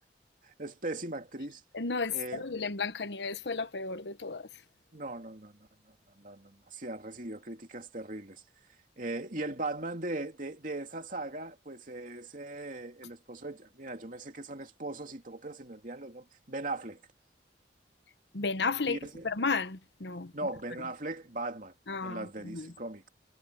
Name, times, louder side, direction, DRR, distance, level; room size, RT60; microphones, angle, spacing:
voice 1, 0.4-1.6 2.1-2.4 4.9-5.7 6.2-8.4 9.0-17.0 18.9-19.3 20.3-21.7 22.0-23.1, right 2 dB, 45° right, 2.6 m, -39 dB
voice 2, 1.7-4.5 18.3-20.5 21.9-22.7, left 4 dB, 70° left, 1.1 m, -33 dB
head